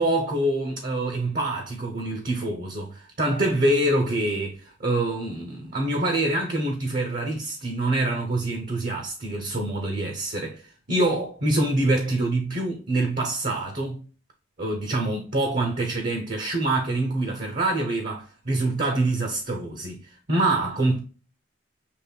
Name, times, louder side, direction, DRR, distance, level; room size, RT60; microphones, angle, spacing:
voice 1, 0.0-10.6 10.9-14.0 14.6-20.0 20.3-21.0, right 2 dB, 40° right, 0.7 m, -25 dB
6.7 x 3.1 x 2.2 m
head